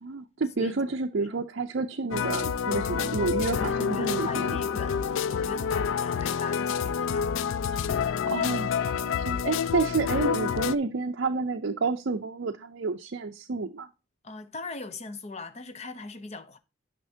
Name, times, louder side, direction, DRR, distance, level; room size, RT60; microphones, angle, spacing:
voice 1, 0.0-4.6 8.3-13.9, right 4 dB, 60° right, 0.5 m, -30 dB
voice 2, 0.6-0.9 1.2-1.4 3.3-7.4 14.2-16.6, left 3 dB, 35° left, 0.6 m, -41 dB
sound 1, 2.1-10.8, left 7 dB, 70° left, 0.3 m, -28 dB
9.6 x 5.7 x 2.7 m
head